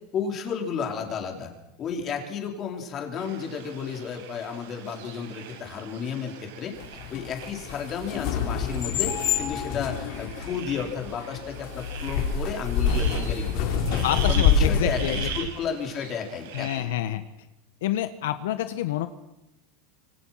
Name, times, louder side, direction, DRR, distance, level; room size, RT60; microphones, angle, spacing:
voice 1, 0.1-1.5 1.8-6.7 7.1-9.1 9.4-16.9, left 6 dB, 30° left, 2 dB, 4.4 m, -32 dB
sound 1, 3.2-16.8, right 8 dB, 85° right, 7.2 m, -42 dB
sound 2, 6.8-15.4, left 6 dB, 55° left, 4.5 m, -26 dB
voice 2, 14.0-15.3 16.5-17.2 17.8-19.1, left 13 dB, 85° left, 9 dB, 1.5 m, -28 dB
26.5 x 24.5 x 6.0 m, 0.90 s
supercardioid pair, 160°, 0 cm